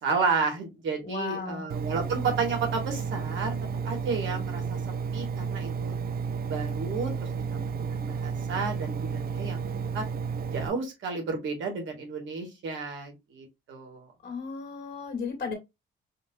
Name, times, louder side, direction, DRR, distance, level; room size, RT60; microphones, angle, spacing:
voice 1, 0.0-3.6 3.8-4.8 5.1-6.0 6.5-7.1 7.5-9.6 9.9-10.1 10.5-14.1, right 4 dB, 75° right, 3 dB, 2.1 m, -32 dB
voice 2, 1.0-1.6 14.2-15.5, left 5 dB, 50° left, 4 dB, 1.8 m, -34 dB
Engine, 1.7-10.7, right 6 dB, 50° right, 0.6 m, -32 dB
5.1 x 2.9 x 2.6 m, 0.21 s
cardioid pair, 90°, 20 cm